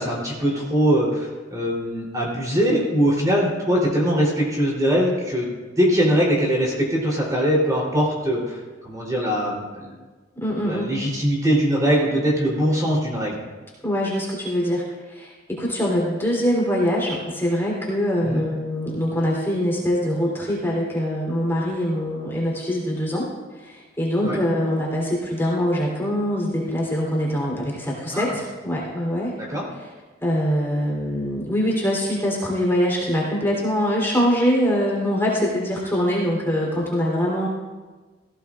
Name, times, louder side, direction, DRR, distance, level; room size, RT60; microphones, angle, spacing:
voice 1, 0.0-5.5 5.8-9.9 10.6-13.4 18.2-18.5 24.2-24.4 28.1-28.4 29.5-29.7, equal, 20° right, -4 dB, 3.6 m, -22 dB
voice 2, 10.4-11.0 13.8-23.3 23.6-29.3 30.2-37.5, equal, 10° left, -4 dB, 3.5 m, -23 dB
17.0 x 16.5 x 2.5 m, 1.3 s
head